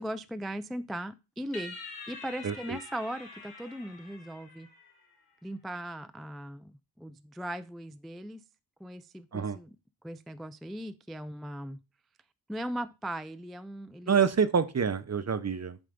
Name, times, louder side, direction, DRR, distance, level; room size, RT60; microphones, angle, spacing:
voice 1, 0.0-1.8 2.1-4.7 5.4-8.4 8.8-9.8 10.0-11.8 12.5-14.2, right 1 dB, ahead, 0.3 m, -38 dB
sound 1, 1.5-5.1, left 3 dB, 55° left, 3.1 m, -46 dB
voice 2, 2.4-2.8 9.3-9.6 14.1-15.8, right 6 dB, 35° right, 0.7 m, -27 dB
7.8 x 3.5 x 5.0 m
cardioid pair, 60°, 45 cm